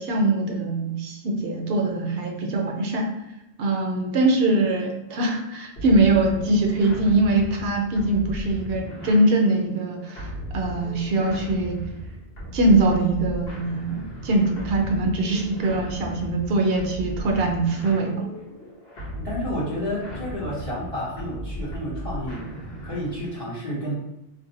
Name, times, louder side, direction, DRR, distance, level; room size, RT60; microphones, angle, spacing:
voice 1, 0.0-3.1 3.6-10.3 10.5-11.8 12.5-18.2, right 2 dB, 65° right, 2 dB, 0.7 m, -22 dB
sound 1, 5.8-23.4, equal, 60° left, 1.0 m, -36 dB
voice 2, 19.1-22.4 22.8-24.0, equal, 30° left, -6 dB, 0.8 m, -30 dB
2.6 x 2.1 x 3.9 m, 0.88 s
omnidirectional pair, 1.2 m